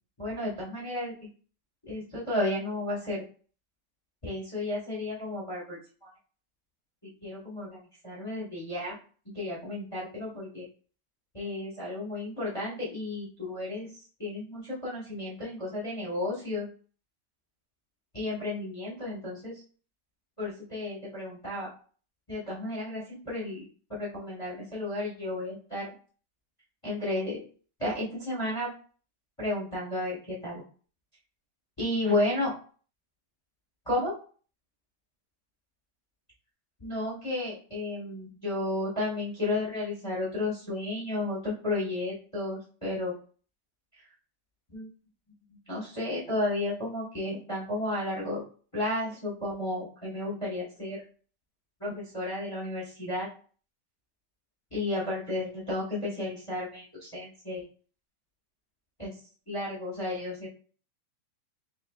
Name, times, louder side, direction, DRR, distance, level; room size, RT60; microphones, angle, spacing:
voice 1, 0.2-1.3 1.8-3.2 4.2-6.1 7.2-9.0 9.3-10.7 11.3-16.7 18.1-19.6 20.4-21.7 22.3-25.9 26.8-27.5 27.8-28.7 29.4-30.6 31.8-32.5 33.8-34.1 36.8-43.1 44.0-44.1 44.7-44.9 45.7-48.4 48.7-51.0 51.8-53.3 54.7-57.7 59.0-59.2 59.5-60.5, left 2 dB, 50° left, -5 dB, 0.3 m, -33 dB
4.4 x 3.6 x 2.4 m, 0.41 s
omnidirectional pair, 3.3 m